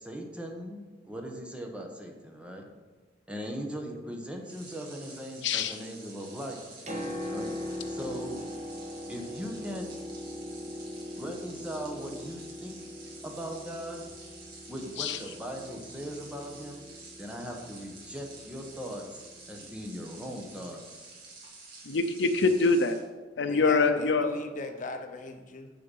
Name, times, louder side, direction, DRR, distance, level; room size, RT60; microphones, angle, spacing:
voice 1, 0.0-2.6 3.3-6.6 7.2-8.4 9.1-9.9 11.2-12.8 13.2-14.0 14.7-16.8 17.2-21.1, equal, 5° right, 2 dB, 1.1 m, -39 dB
sound 1, 4.4-23.0, right 3 dB, 55° right, 2.5 m, -50 dB
voice 2, 5.4-5.7 15.0-15.2 21.9-23.0 23.4-24.3, left 4 dB, 70° left, 9 dB, 0.6 m, -24 dB
Piano, 6.7-20.3 21.4-21.5, left 1 dB, 40° right, 1.5 m, -41 dB
voice 3, 23.4-25.7, left 2 dB, 45° left, 6 dB, 0.8 m, -38 dB
7.8 x 7.0 x 5.4 m, 1.3 s
head